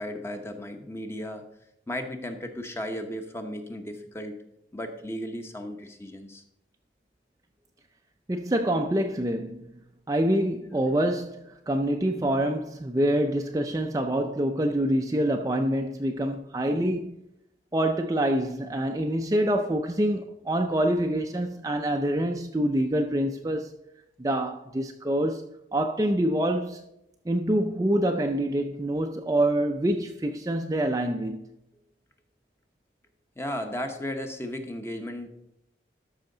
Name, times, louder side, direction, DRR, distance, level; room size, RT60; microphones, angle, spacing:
voice 1, 0.0-1.4 1.9-4.4 4.7-6.4 33.4-35.3, left 1 dB, 15° left, 0.9 m, -35 dB
voice 2, 8.3-9.6 10.1-17.1 17.7-23.7 24.2-26.8 27.3-31.5, right 1 dB, 20° right, 0.4 m, -26 dB
13.0 x 5.6 x 3.9 m
head